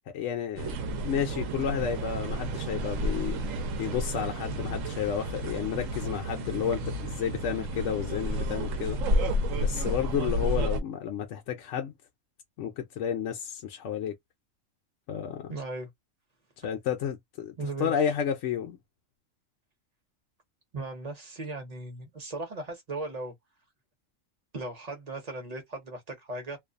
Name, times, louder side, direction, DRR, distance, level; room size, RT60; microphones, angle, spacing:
voice 1, 0.1-0.8 1.0-3.4 3.8-9.0 9.6-11.9 12.6-14.2 15.1-15.5 16.6-17.5 17.8-18.8, left 8 dB, 70° left, 0.9 m, -31 dB
sound 1, 0.6-10.8, equal, 80° right, 1.0 m, -31 dB
voice 2, 15.5-15.9 17.6-17.9 20.7-23.3 24.5-26.6, right 2 dB, 35° right, 0.8 m, -37 dB
2.5 x 2.3 x 2.4 m
omnidirectional pair, 1.4 m